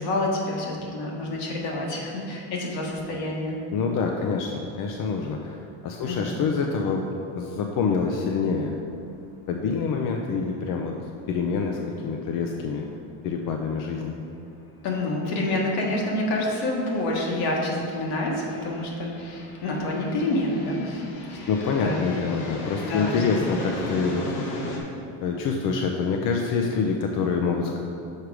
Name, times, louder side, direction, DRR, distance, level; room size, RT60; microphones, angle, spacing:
voice 1, 0.0-3.6 6.0-6.3 14.8-21.0 21.3-22.1 22.8-23.2, left 1 dB, 70° left, -2 dB, 1.7 m, -28 dB
voice 2, 3.7-7.1 7.3-8.7 9.5-10.9 11.3-12.9 13.2-14.2 21.5-24.6 25.2-27.8, left 5 dB, 50° left, 2 dB, 0.6 m, -26 dB
sound 1, 8.8-8.9 9.1-9.2 13.2-13.3 14.4-14.6 15.2-24.8, left 1 dB, 90° left, 1.4 m, -37 dB
6.5 x 4.7 x 4.8 m, 2.6 s
cardioid pair, 130°, 42 cm